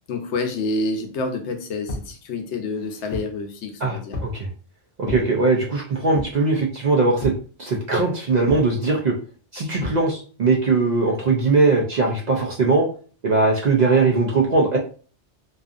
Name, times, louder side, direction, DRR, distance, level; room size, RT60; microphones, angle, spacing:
voice 1, 0.1-4.1, left 3 dB, 85° left, 5 dB, 0.9 m, -28 dB
sound 1, 1.9-2.1 2.7-3.4 4.1-4.4 5.0-5.3 6.1-6.5 7.2-7.5 8.5-8.7 9.8-10.0, left 2 dB, 45° left, 0.7 m, -32 dB
voice 2, 3.8-4.5 5.0-7.3 7.6-9.2 9.5-12.9 13.2-14.8, right 3 dB, 60° right, -2 dB, 0.5 m, -20 dB
2.6 x 2.3 x 2.4 m, 0.41 s
omnidirectional pair, 1.2 m